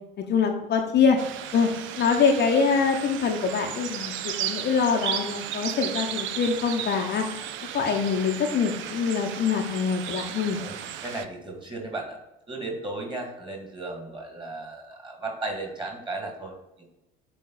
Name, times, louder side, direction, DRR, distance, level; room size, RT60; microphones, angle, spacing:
voice 1, 0.2-1.2 1.5-1.7 2.0-7.3 7.7-10.6, left 5 dB, 35° left, 2 dB, 0.9 m, -24 dB
sound 1, 1.2-11.3, right 10 dB, 40° right, 0.6 m, -35 dB
voice 2, 11.0-12.2 12.5-16.9, right 2 dB, 15° right, 1 dB, 2.1 m, -35 dB
8.3 x 3.9 x 4.0 m, 0.93 s
figure-of-eight pair, 65°, 29 cm